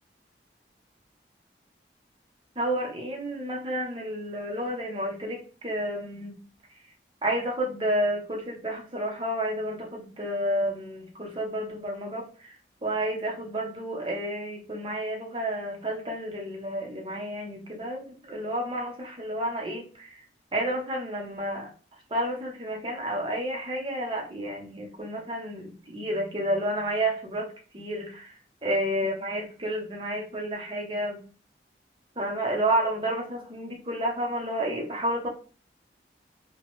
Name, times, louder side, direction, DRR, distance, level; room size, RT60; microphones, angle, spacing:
voice 1, 2.6-6.4 7.2-12.5 12.8-20.2 20.5-21.7 22.1-28.3 28.6-31.2 32.2-35.3, right 1 dB, 30° right, 0 dB, 0.7 m, -30 dB
2.9 x 2.2 x 2.9 m, 0.37 s
head